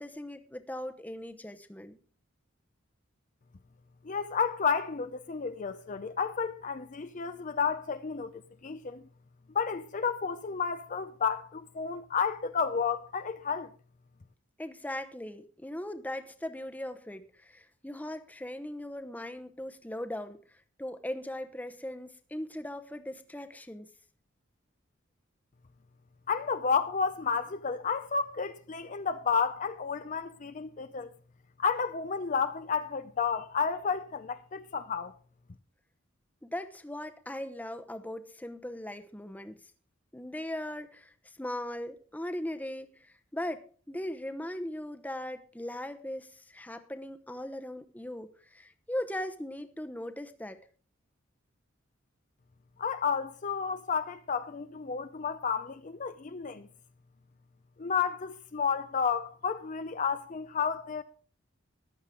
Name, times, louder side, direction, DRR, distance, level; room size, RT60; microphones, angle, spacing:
voice 1, 0.0-2.0 14.6-23.9 36.4-39.6 40.1-50.6, left 1 dB, 10° left, 0.9 m, -39 dB
voice 2, 4.0-8.3 8.6-9.0 9.5-13.7 26.3-31.1 31.6-35.1 52.8-56.7 57.8-61.0, left 6 dB, 40° left, 0.5 m, -31 dB
14.0 x 11.5 x 3.7 m
head